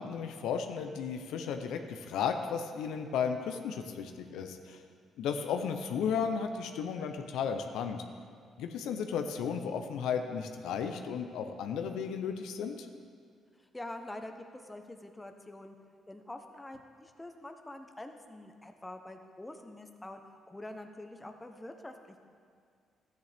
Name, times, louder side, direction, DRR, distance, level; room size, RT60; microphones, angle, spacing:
voice 1, 0.0-4.8 5.2-8.0 8.6-12.9, left 6 dB, 85° left, 6 dB, 0.6 m, -34 dB
voice 2, 13.6-15.8 16.1-22.2, left 1 dB, 15° left, 5 dB, 0.8 m, -46 dB
13.0 x 9.2 x 3.5 m, 2.2 s
cardioid pair, 90°, 0 cm